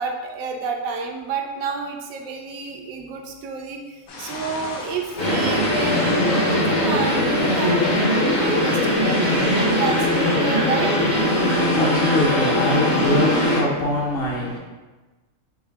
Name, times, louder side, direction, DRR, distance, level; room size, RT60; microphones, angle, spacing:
voice 1, 0.0-10.9, right 4 dB, 85° right, 2 dB, 1.0 m, -29 dB
sound 1, 4.1-12.3, left 3 dB, 90° left, 1.1 m, -37 dB
sound 2, 5.2-13.6, left 1 dB, 70° left, 1.5 m, -20 dB
voice 2, 11.3-14.6, left 2 dB, 55° left, -3 dB, 0.7 m, -23 dB
3.8 x 2.7 x 3.3 m, 1.2 s
omnidirectional pair, 1.4 m